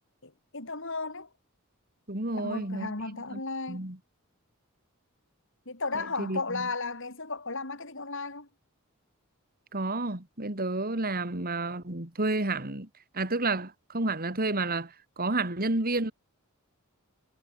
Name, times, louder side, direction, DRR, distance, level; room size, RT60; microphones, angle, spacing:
voice 1, 0.2-1.3 2.3-3.9 5.7-8.5, left 3 dB, 65° left, 7.8 m, -35 dB
voice 2, 2.1-2.9 3.3-3.4 3.7-4.0 5.9-6.7 9.7-12.9 13.1-16.1, right 2 dB, 45° right, 3.4 m, -30 dB
head